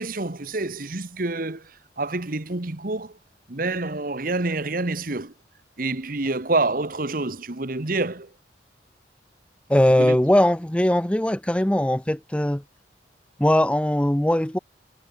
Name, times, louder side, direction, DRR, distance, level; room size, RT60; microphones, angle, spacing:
voice 1, 0.0-3.2 3.5-5.3 5.8-8.3 9.9-10.2, right 2 dB, 50° right, 1.4 m, -27 dB
voice 2, 9.7-12.6 13.4-14.6, left 1 dB, 5° left, 0.5 m, -20 dB
head